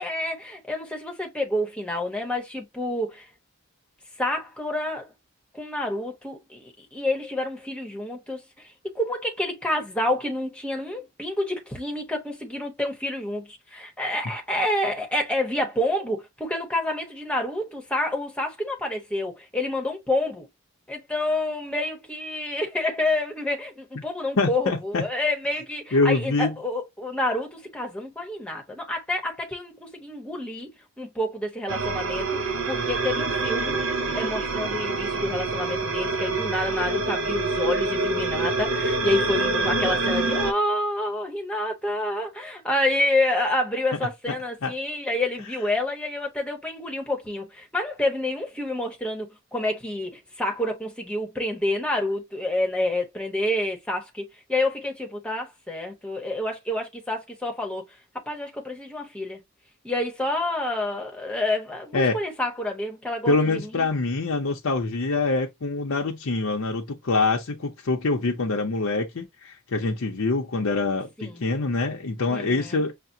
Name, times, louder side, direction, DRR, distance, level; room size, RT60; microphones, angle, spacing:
voice 1, 0.0-3.3 4.2-5.1 5.5-20.5 20.9-33.8 34.1-54.2 54.5-57.8 58.1-59.4 59.8-63.9 71.3-71.4 72.3-72.8, left 1 dB, 5° left, 1.0 m, -28 dB
voice 2, 24.4-25.0 25.9-26.5 44.6-44.7 61.9-62.2 63.3-72.9, left 3 dB, 65° left, 0.6 m, -25 dB
sound 1, 31.7-40.5, right 3 dB, 60° right, 0.6 m, -26 dB
5.7 x 2.1 x 2.6 m
head